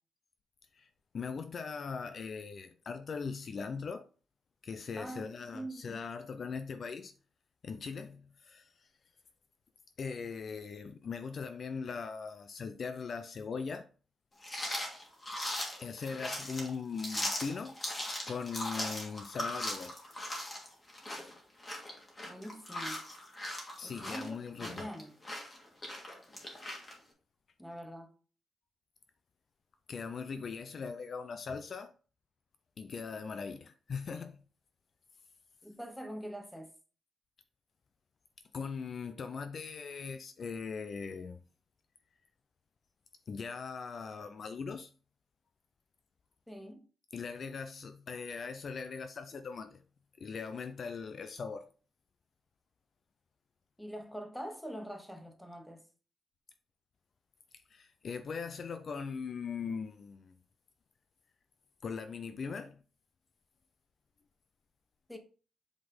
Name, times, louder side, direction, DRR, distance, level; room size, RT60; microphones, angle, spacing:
voice 1, 0.7-4.1 4.6-7.1 7.6-8.9 10.0-13.9 15.8-17.8 18.3-20.0 23.8-24.9 29.9-31.9 32.8-34.4 38.5-41.4 43.3-44.9 47.1-49.8 50.2-51.7 57.7-60.3 61.8-62.8, left 5 dB, 40° left, 0.5 m, -40 dB
voice 2, 5.0-6.0 22.2-23.0 23.8-25.2 27.6-28.1 35.6-36.7 46.5-46.8 53.8-55.9 65.1-65.2, equal, ahead, 0.9 m, -44 dB
sound 1, 14.4-26.9, left 1 dB, 20° left, 1.8 m, -39 dB
7.8 x 4.1 x 3.7 m
wide cardioid pair, 165°, 0 cm